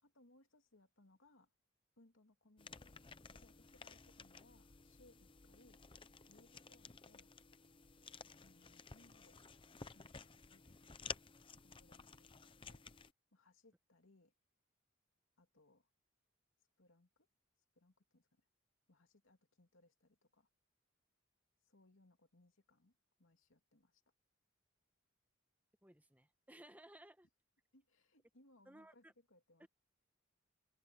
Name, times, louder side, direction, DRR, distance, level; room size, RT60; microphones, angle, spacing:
voice 1, 0.0-1.5 2.0-5.8 6.3-7.3 8.4-9.4 9.9-11.2 11.6-12.9 13.3-14.3 15.4-15.9 16.8-17.3 17.7-18.5 18.9-20.5 21.6-24.0 27.7-29.7, left 2 dB, 85° left, 2.6 m, -70 dB
sound 1, 2.6-13.1, left 5 dB, 25° left, 0.7 m, -54 dB
voice 2, 25.8-27.3 28.6-29.1 29.6-29.7, right 1 dB, 10° right, 1.3 m, -59 dB
open air
head